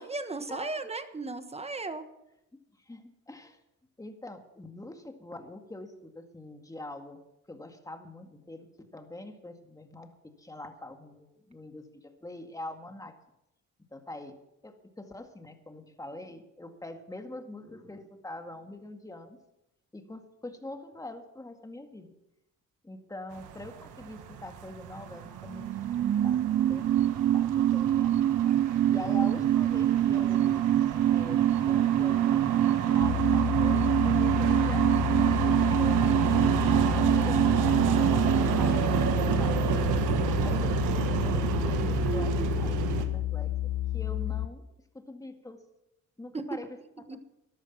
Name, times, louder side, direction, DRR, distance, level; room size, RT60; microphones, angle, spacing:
voice 1, 0.0-2.0 46.3-46.4 47.1-47.2, right 3 dB, 20° right, 10 dB, 1.3 m, -35 dB
voice 2, 2.9-3.6 4.0-7.2 7.5-10.1 10.4-13.1 13.9-14.4 14.6-19.4 19.9-22.1 22.8-26.4 26.7-30.6 31.1-37.4 37.9-39.1 39.4-44.6 44.9-45.6 46.2-46.7 47.1-47.2, left 2 dB, 10° left, 5 dB, 2.0 m, -44 dB
sound 1, 23.3-43.1, right 8 dB, 90° right, 1.4 m, -31 dB
sound 2, 25.3-40.5 40.8-40.9, right 11 dB, 40° right, 0.4 m, -25 dB
sound 3, 33.0-44.5, left 13 dB, 85° left, 0.7 m, -31 dB
14.0 x 11.0 x 5.9 m, 0.88 s
cardioid pair, 90°, 30 cm